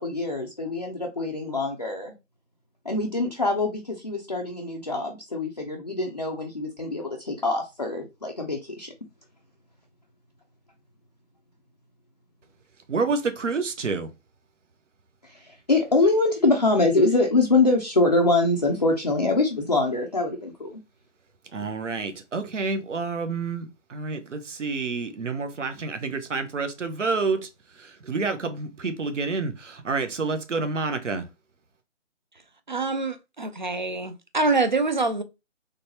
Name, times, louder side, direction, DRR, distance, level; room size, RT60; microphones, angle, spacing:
voice 1, 0.0-2.1 2.8-8.9 15.2-20.8, left 2 dB, 35° left, 0.4 m, -24 dB
voice 2, 12.9-14.1 21.5-23.6 23.9-27.5 28.1-31.2, right 4 dB, 70° right, 1.0 m, -28 dB
voice 3, 32.7-35.2, right 3 dB, 40° right, 0.4 m, -25 dB
3.9 x 3.3 x 2.8 m
figure-of-eight pair, 160°, 38 cm